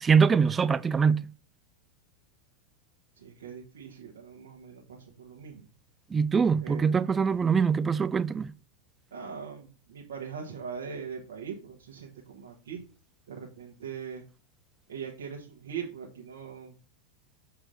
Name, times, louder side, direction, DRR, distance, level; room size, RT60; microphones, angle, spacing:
voice 1, 0.0-1.2 6.1-8.5, right 6 dB, 15° right, 0.4 m, -23 dB
voice 2, 3.2-5.7 6.6-7.2 9.1-12.8 13.3-14.2 14.9-16.7, right 7 dB, 65° right, 1.3 m, -41 dB
7.4 x 4.7 x 5.2 m
figure-of-eight pair, 90°, 0 cm